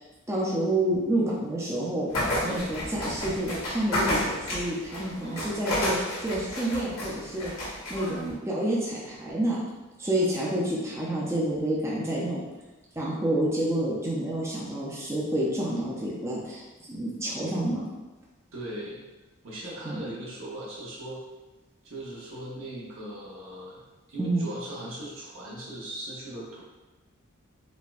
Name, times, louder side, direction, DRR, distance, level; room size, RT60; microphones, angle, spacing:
voice 1, 0.3-2.1 2.4-9.6 10.0-12.4 13.0-16.6 16.9-17.9 19.8-20.0 24.2-24.5, right 1 dB, 15° right, -5 dB, 0.4 m, -29 dB
sound 1, 2.1-8.3, left 1 dB, 85° left, 1.2 m, -31 dB
voice 2, 2.4-2.8 5.2-5.7 18.5-19.0 19.4-21.2 21.8-23.8 24.1-26.6, right 1 dB, 70° right, -5 dB, 0.7 m, -39 dB
4.1 x 2.1 x 2.4 m, 1.1 s
head